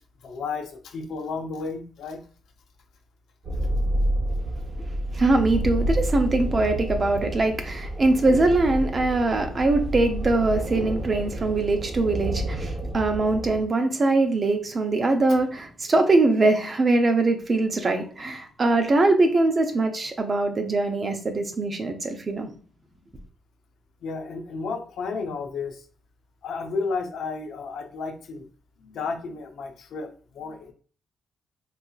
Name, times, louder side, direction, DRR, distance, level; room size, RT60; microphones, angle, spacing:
voice 1, 0.2-2.3 3.6-3.8 15.3-15.4 24.0-25.8 26.4-28.5 28.8-30.7, left 4 dB, 80° left, 5 dB, 0.6 m, -32 dB
sound 1, 3.4-13.6, right 1 dB, 55° right, 1.0 m, -29 dB
voice 2, 5.1-22.5, right 2 dB, 35° right, 5 dB, 0.7 m, -22 dB
4.0 x 2.7 x 2.3 m, 0.40 s
cardioid pair, 100°, 0 cm